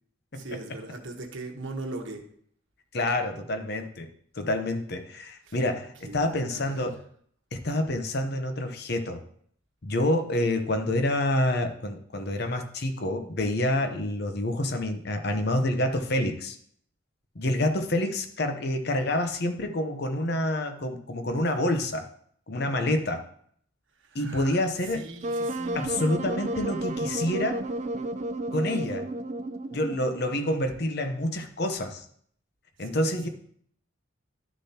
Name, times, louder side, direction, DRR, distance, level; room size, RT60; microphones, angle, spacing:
voice 1, 0.3-2.3 5.4-5.6 6.0-6.9 24.0-25.9 32.8-33.3, right 2 dB, 65° right, 2 dB, 1.3 m, -40 dB
voice 2, 2.9-4.1 4.4-7.0 7.5-9.2 9.8-16.6 17.3-22.1 22.5-23.2 24.1-25.0 25.7-27.6 28.5-29.1 29.7-32.0 32.8-33.3, left 1 dB, 50° left, 7 dB, 0.8 m, -27 dB
Wind instrument woodwind instrument, 25.2-30.3, right 1 dB, 35° right, 0.4 m, -32 dB
11.5 x 6.7 x 2.9 m, 0.63 s
head